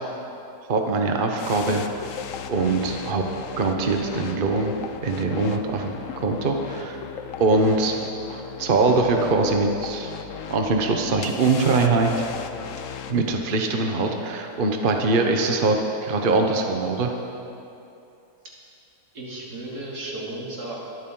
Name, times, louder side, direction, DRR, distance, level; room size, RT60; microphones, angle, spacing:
voice 1, 0.7-1.9 2.5-3.2 3.6-4.8 5.0-5.9 6.2-7.0 7.4-7.9 8.3-10.1 10.5-12.1 13.1-17.1, right 3 dB, 35° right, 3 dB, 1.2 m, -22 dB
sound 1, 1.4-13.2, left 8 dB, 60° left, 1.0 m, -37 dB
voice 2, 19.1-20.8, right 2 dB, 85° right, -4 dB, 3.4 m, -34 dB
22.0 x 13.0 x 3.9 m, 2.8 s
omnidirectional pair, 1.6 m